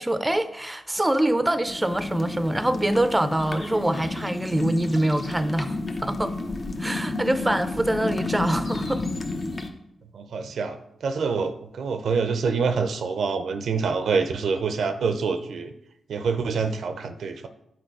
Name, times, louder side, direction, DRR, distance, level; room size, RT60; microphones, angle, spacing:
voice 1, 0.0-6.4 6.8-9.1, right 1 dB, 15° right, 0.5 m, -24 dB
sound 1, 1.7-9.7, left 3 dB, 50° left, 0.8 m, -31 dB
voice 2, 10.1-15.7 16.1-17.5, right 5 dB, 80° right, 0.5 m, -26 dB
7.8 x 3.8 x 4.6 m
cardioid pair, 55°, 0 cm